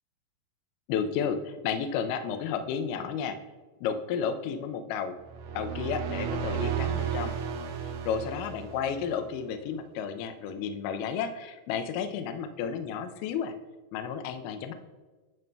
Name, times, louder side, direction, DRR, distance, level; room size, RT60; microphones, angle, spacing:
voice 1, 0.9-3.4 3.8-5.2 5.6-7.3 8.1-13.5 13.9-14.7, left 7 dB, 80° left, 8 dB, 2.0 m, -32 dB
sound 1, 5.2-9.1, right 8 dB, 75° right, 2.0 m, -33 dB
11.0 x 5.3 x 2.2 m, 1.3 s
omnidirectional pair, 4.2 m